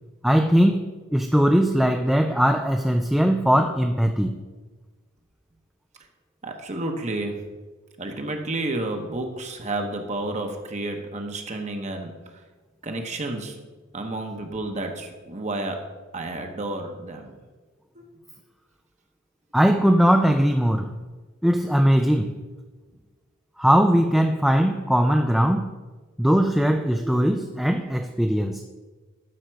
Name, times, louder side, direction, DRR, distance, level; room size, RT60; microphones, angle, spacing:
voice 1, 0.2-4.4 19.5-20.9 21.4-22.4 23.6-25.7 26.2-28.6, equal, ahead, 5 dB, 0.3 m, -20 dB
voice 2, 6.4-7.4 8.0-12.1 12.8-13.6 13.9-15.8 16.1-17.3 18.0-18.1, right 2 dB, 35° right, 4 dB, 0.9 m, -31 dB
12.0 x 5.1 x 4.5 m, 1.3 s
head